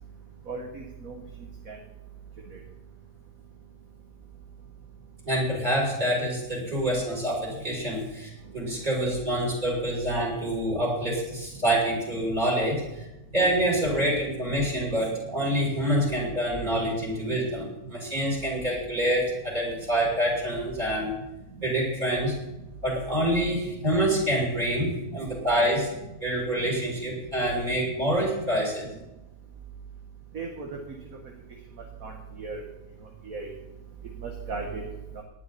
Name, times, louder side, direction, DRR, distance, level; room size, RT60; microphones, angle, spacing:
voice 1, 0.5-1.2 1.7-1.8 30.3-30.7 32.0-32.1 32.4-32.6 33.3-33.5 34.2-34.8 35.2-35.3, right 4 dB, 60° right, 1 dB, 2.0 m, -35 dB
voice 2, 5.2-13.1 13.3-21.1 21.6-22.3 22.8-24.9 25.1-25.9 26.2-28.8, right 1 dB, 25° right, -4 dB, 6.6 m, -26 dB
18.5 x 11.5 x 4.2 m, 0.96 s
omnidirectional pair, 1.7 m